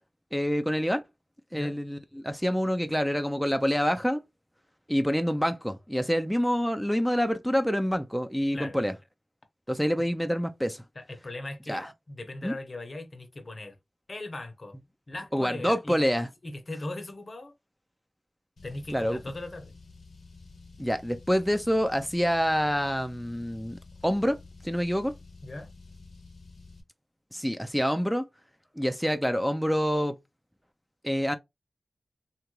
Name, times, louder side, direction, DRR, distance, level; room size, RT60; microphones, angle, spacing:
voice 1, 0.3-1.0 1.5-4.2 4.9-8.9 9.7-10.8 11.7-11.9 12.4-12.6 15.3-16.3 18.9-19.2 20.8-24.4 24.6-25.1 27.3-28.2 28.8-30.2 31.0-31.4, equal, ahead, 0.4 m, -27 dB
voice 2, 10.9-13.8 14.1-14.8 15.1-16.0 16.4-17.5 18.6-19.7 25.4-25.7, left 2 dB, 55° left, 0.7 m, -39 dB
Car, 18.6-26.8, left 3 dB, 85° left, 0.8 m, -50 dB
2.9 x 2.3 x 3.0 m
cardioid pair, 45°, 0 cm